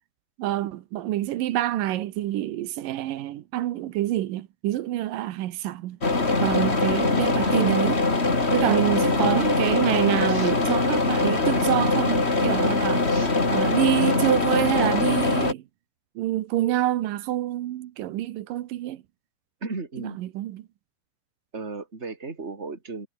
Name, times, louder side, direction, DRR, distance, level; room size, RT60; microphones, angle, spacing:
voice 1, 0.4-6.0 6.4-8.0 8.5-13.1 13.5-15.6 16.2-19.0 20.2-20.7, right 14 dB, 85° right, 2.8 m, -26 dB
sound 1, 6.0-15.5, left 3 dB, 20° left, 2.8 m, -22 dB
voice 2, 19.6-20.2 21.5-23.1, right 3 dB, 20° right, 3.5 m, -35 dB
omnidirectional pair, 3.8 m